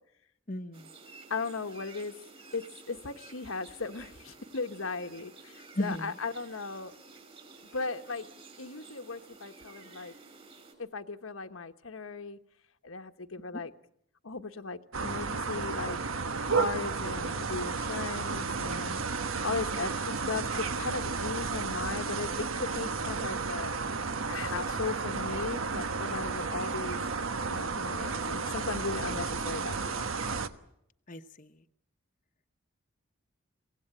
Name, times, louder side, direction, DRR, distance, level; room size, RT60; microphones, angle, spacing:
voice 1, 0.5-0.9 5.7-6.1 13.5-13.6 31.1-31.5, left 1 dB, 40° left, 6 dB, 0.9 m, -35 dB
sound 1, 0.7-10.7, right 3 dB, 30° right, 5.5 m, -52 dB
voice 2, 1.3-2.1 2.5-7.0 7.7-8.3 8.6-10.1 10.8-12.4 12.8-13.7 14.2-16.0 16.4-19.0 19.4-23.7 24.3-27.0 27.5-30.2, left 4 dB, 85° left, 7 dB, 1.2 m, -37 dB
sound 2, 14.9-30.5, right 4 dB, 85° right, 1.2 m, -33 dB
24.0 x 18.0 x 8.9 m, 0.76 s
head